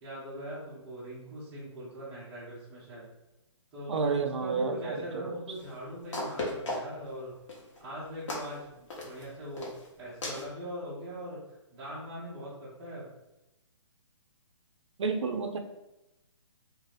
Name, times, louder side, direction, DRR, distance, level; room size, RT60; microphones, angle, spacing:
voice 1, 0.0-3.1 3.7-7.4 7.8-13.1, equal, 5° right, -8 dB, 0.4 m, -41 dB
voice 2, 3.9-5.4 15.0-15.6, right 4 dB, 65° right, 6 dB, 0.4 m, -30 dB
sound 1, 5.6-5.7 6.1-7.1 7.5-7.8 8.3-8.5 8.9-9.2 9.6-9.9 10.2-10.5, left 2 dB, 70° left, 1.0 m, -35 dB
2.5 x 2.4 x 3.2 m, 0.93 s
hypercardioid pair, 170°, 16 cm